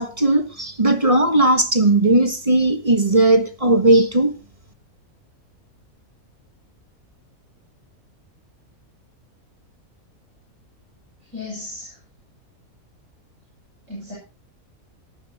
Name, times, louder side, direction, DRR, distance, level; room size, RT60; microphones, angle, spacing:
voice 1, 0.0-4.3, right 2 dB, 25° right, 1.5 m, -17 dB
voice 2, 11.3-12.0 13.9-14.1, left 2 dB, 60° right, 8.2 m, -34 dB
18.5 x 11.5 x 3.0 m
omnidirectional pair, 1.5 m